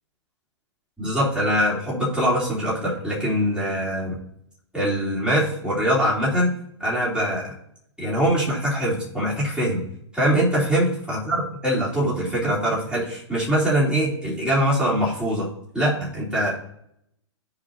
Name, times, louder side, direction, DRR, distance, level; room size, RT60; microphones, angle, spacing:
voice 1, 1.0-4.2 4.7-6.5 6.8-7.5 8.0-9.8 10.1-15.5 15.7-16.5, equal, 5° right, -8 dB, 3.9 m, -23 dB
15.0 x 5.1 x 2.9 m, 0.74 s
hypercardioid pair, 135°, 15 cm